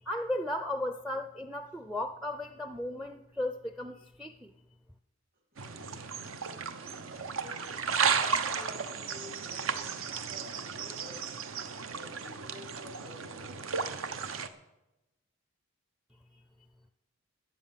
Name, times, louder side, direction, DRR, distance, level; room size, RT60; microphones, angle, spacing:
voice 1, 0.0-4.5, left 1 dB, 5° right, 9 dB, 0.5 m, -35 dB
sound 1, 5.6-14.5, right 6 dB, 75° right, 0.9 m, -34 dB
voice 2, 7.3-7.7 8.1-9.9 10.3-11.2 11.9-13.6, left 1 dB, 45° right, 0 dB, 2.1 m, -50 dB
13.0 x 8.7 x 7.4 m, 0.97 s
head